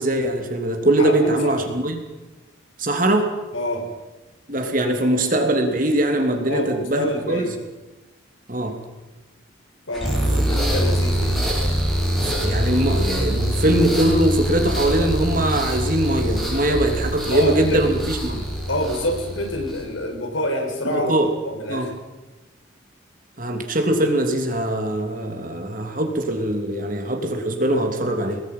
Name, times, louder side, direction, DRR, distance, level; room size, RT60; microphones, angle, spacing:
voice 1, 0.0-2.0 2.8-3.3 4.5-7.5 8.5-8.8 12.2-18.5 20.8-21.3 21.7-21.9 23.4-28.4, right 1 dB, 45° right, 4 dB, 3.1 m, -22 dB
voice 2, 1.0-1.7 3.5-3.9 6.5-7.6 9.9-11.4 16.7-16.8 17.3-17.8 18.7-21.2 21.4-21.9, left 1 dB, 85° left, 3 dB, 5.4 m, -27 dB
sound 1, 9.9-19.9, equal, ahead, 6.7 m, -24 dB
27.0 x 20.5 x 5.7 m, 1.1 s
head